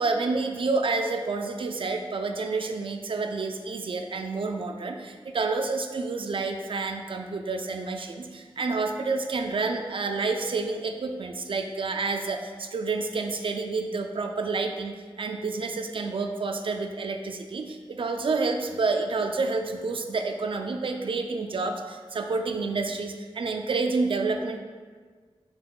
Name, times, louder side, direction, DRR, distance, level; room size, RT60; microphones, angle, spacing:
voice 1, 0.0-24.6, right 3 dB, 60° right, 5 dB, 0.4 m, -29 dB
5.7 x 2.5 x 3.7 m, 1.5 s
wide cardioid pair, 80°, 10 cm